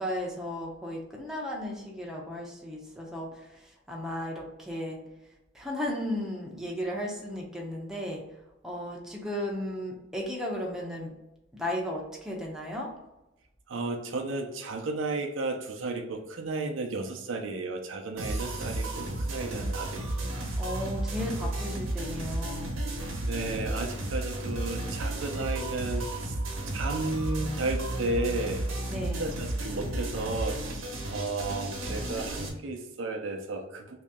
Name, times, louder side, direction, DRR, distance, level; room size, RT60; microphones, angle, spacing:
voice 1, 0.0-5.0 5.5-8.2 8.6-11.1 11.5-12.9 20.6-22.7 28.9-29.3, left 1 dB, 5° right, -2 dB, 0.6 m, -35 dB
voice 2, 13.7-20.5 23.2-26.3 26.7-28.7 29.0-30.6 31.1-34.0, right 2 dB, 70° right, 3 dB, 0.5 m, -33 dB
sound 1, 18.2-32.5, right 1 dB, 85° right, 0.9 m, -33 dB
3.0 x 2.8 x 3.5 m, 0.94 s
head